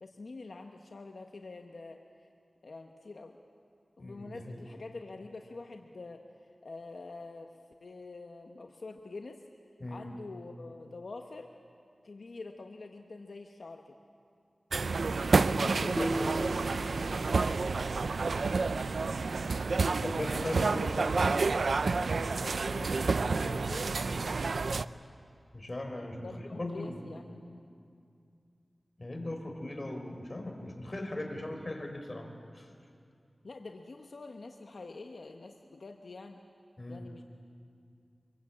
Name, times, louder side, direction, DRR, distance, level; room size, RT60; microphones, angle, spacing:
voice 1, 0.0-2.3 2.6-3.4 4.0-9.4 9.9-11.5 12.0-14.0 15.6-17.6 21.9-23.9 26.2-27.2 33.4-36.4 36.9-37.2, left 3 dB, 75° left, 3 dB, 1.1 m, -46 dB
voice 2, 4.0-4.6 9.8-10.1 15.8-16.1 20.0-21.4 25.5-27.0 29.0-32.3 32.5-32.7 36.8-37.1, left 1 dB, 40° left, 4 dB, 4.1 m, -38 dB
sound 1, 14.7-24.8, right 4 dB, 80° right, 0.5 m, -29 dB
sound 2, 16.0-18.1, right 1 dB, 5° right, 0.9 m, -37 dB
26.0 x 23.0 x 8.6 m, 2.4 s
wide cardioid pair, 55°, 0 cm